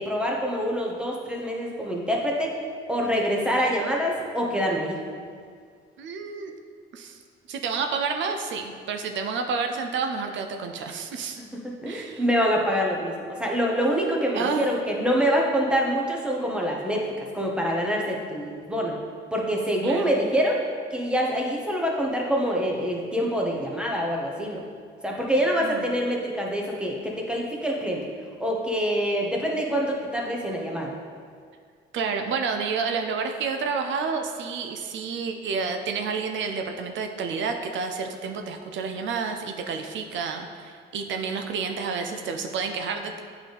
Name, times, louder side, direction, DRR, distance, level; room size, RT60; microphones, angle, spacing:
voice 1, 0.0-2.5 2.9-5.0 11.5-17.1 17.3-19.0 19.3-20.6 20.9-24.6 25.0-28.0 28.4-30.9, equal, 5° right, -1 dB, 1.1 m, -25 dB
voice 2, 6.0-6.5 6.9-7.2 7.5-11.4 11.9-12.2 14.3-14.8 19.8-20.1 25.6-25.9 31.9-43.2, right 5 dB, 70° right, 5 dB, 0.5 m, -30 dB
8.3 x 4.0 x 3.4 m, 2.1 s
cardioid pair, 90°, 20 cm